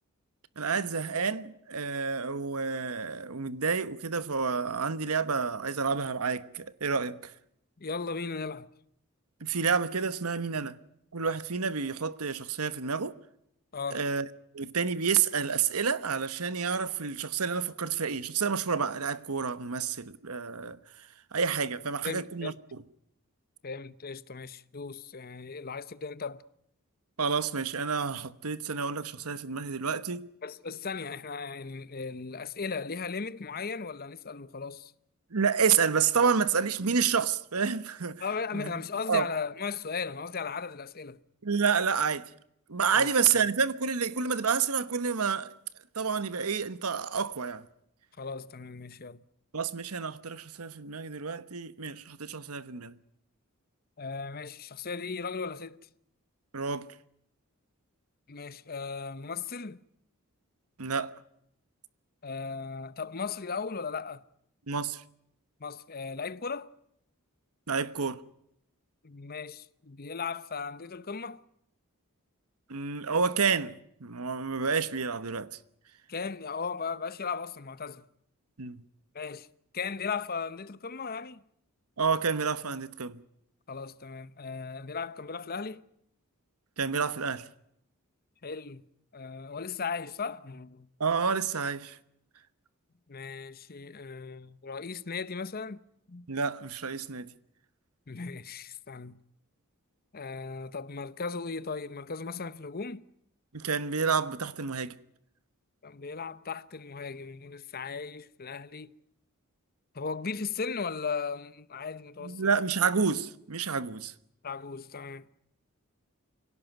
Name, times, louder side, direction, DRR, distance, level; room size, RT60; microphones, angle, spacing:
voice 1, 0.6-7.3 9.4-10.8 11.1-13.1 13.9-14.3 14.5-20.8 21.3-22.8 27.2-30.3 35.3-38.2 38.5-38.7 39.1-39.3 41.4-42.3 42.7-45.5 45.9-47.6 49.5-52.9 56.5-56.9 60.8-61.1 64.7-65.0 67.7-68.2 72.7-75.5 78.6-78.8 82.0-83.2 86.8-87.5 91.0-92.0 96.3-97.3 103.5-104.9 112.2-114.1, right 5 dB, 80° right, 1.2 m, -29 dB
voice 2, 7.8-8.7 13.7-14.1 22.0-22.6 23.6-26.4 30.4-34.9 38.2-41.2 42.9-43.1 48.2-49.2 54.0-55.8 58.3-59.8 62.2-64.2 65.6-66.7 69.0-71.4 76.1-78.0 79.1-79.5 79.7-81.4 83.7-85.8 88.4-88.8 89.1-90.9 93.1-95.8 96.1-96.3 98.1-99.2 100.1-103.0 105.8-108.9 109.9-112.4 114.4-115.3, left 5 dB, 45° left, 0.8 m, -37 dB
25.0 x 17.5 x 9.1 m
head